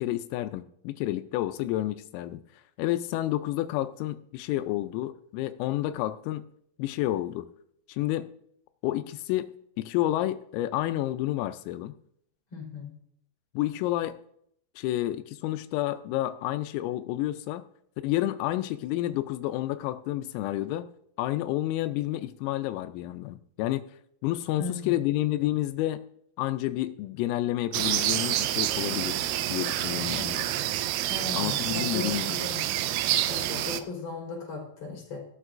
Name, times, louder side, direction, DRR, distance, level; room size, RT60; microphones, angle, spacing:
voice 1, 0.0-2.4 2.8-6.4 6.8-7.5 7.9-8.3 8.8-9.5 9.8-11.9 13.5-14.2 14.8-17.6 18.0-20.9 21.2-23.8 24.2-26.0 26.4-30.5 31.3-32.4, left 15 dB, 85° left, 10 dB, 3.2 m, -30 dB
voice 2, 12.5-12.9 24.6-25.0 31.1-32.6 33.3-35.2, left 4 dB, 35° left, -2 dB, 4.8 m, -37 dB
sound 1, 27.7-33.8, right 13 dB, 85° right, 2.8 m, -28 dB
16.0 x 12.5 x 2.5 m, 0.69 s
omnidirectional pair, 6.0 m